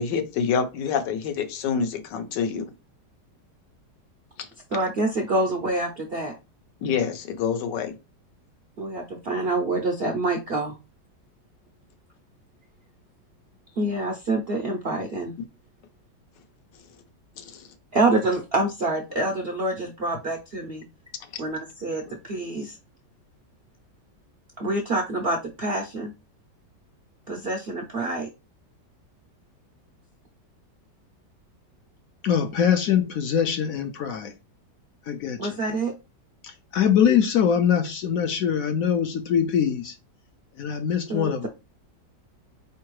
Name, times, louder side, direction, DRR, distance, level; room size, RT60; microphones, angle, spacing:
voice 1, 0.0-2.7 6.8-7.9 17.4-17.7 22.1-22.2, left 6 dB, 85° left, 1.4 m, -27 dB
voice 2, 4.7-6.3 8.8-10.7 13.8-15.3 17.9-20.8 21.4-22.8 24.6-26.1 27.3-28.3 35.4-35.9 41.1-41.5, right 2 dB, 65° right, 0.6 m, -26 dB
voice 3, 32.2-34.3 35.1-35.6 36.4-39.9 40.6-41.5, left 8 dB, 70° left, 0.9 m, -23 dB
4.5 x 3.3 x 3.1 m
omnidirectional pair, 1.9 m